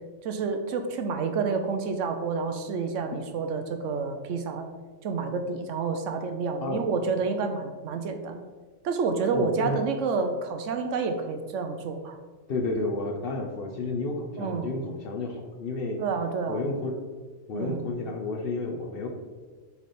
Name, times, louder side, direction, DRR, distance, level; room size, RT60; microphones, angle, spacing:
voice 1, 0.2-4.7 5.0-8.5 8.8-12.2 14.4-14.7 16.0-16.6 17.5-17.9, right 5 dB, 75° right, 6 dB, 1.0 m, -29 dB
voice 2, 9.3-9.8 12.5-16.0 16.5-17.0 17.5-19.1, left 2 dB, 55° left, 2 dB, 0.9 m, -31 dB
7.1 x 3.4 x 4.2 m, 1.4 s
omnidirectional pair, 1.3 m